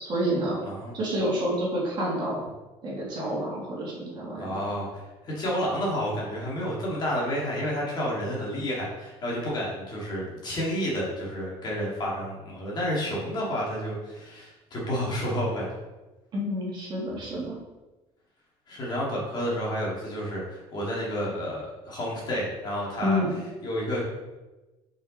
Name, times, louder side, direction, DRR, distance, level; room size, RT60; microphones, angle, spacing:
voice 1, 0.0-0.6 0.9-2.4 2.8-4.6 16.3-17.6 23.0-23.3, equal, 40° right, -5 dB, 2.3 m, -28 dB
voice 2, 4.4-4.9 5.2-15.7 18.7-23.2 23.6-24.0, equal, 35° left, -4 dB, 2.2 m, -30 dB
5.6 x 5.1 x 4.3 m, 1.1 s
cardioid pair, 155°, 12 cm